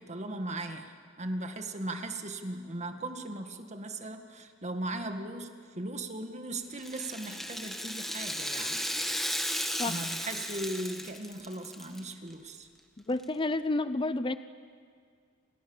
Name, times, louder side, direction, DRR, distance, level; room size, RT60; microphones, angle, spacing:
voice 1, 0.0-5.5 5.8-8.8 9.8-12.7, right 2 dB, 35° right, 6 dB, 1.9 m, -38 dB
Rattle (instrument), 6.7-12.0 12.3-12.4 13.2-13.3, equal, ahead, 1.9 m, -35 dB
voice 2, 13.1-14.4, left 2 dB, 25° left, 12 dB, 0.6 m, -30 dB
28.5 x 28.0 x 7.2 m, 2.1 s
head